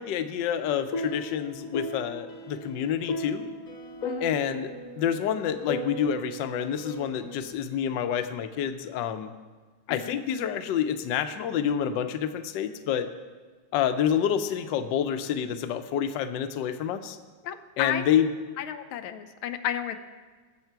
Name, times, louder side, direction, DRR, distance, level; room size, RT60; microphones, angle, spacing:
voice 1, 0.0-3.5 4.2-4.7 5.0-9.3 9.9-13.1 13.7-17.2 17.8-18.3, left 9 dB, 70° left, 8 dB, 1.3 m, -28 dB
sound 1, 0.5-7.5, left 1 dB, 50° left, 1.2 m, -37 dB
voice 2, 4.0-4.3 9.9-10.2 17.4-18.0 18.6-20.0, left 10 dB, 90° left, 8 dB, 1.5 m, -32 dB
20.0 x 7.4 x 4.6 m, 1.4 s
omnidirectional pair, 2.2 m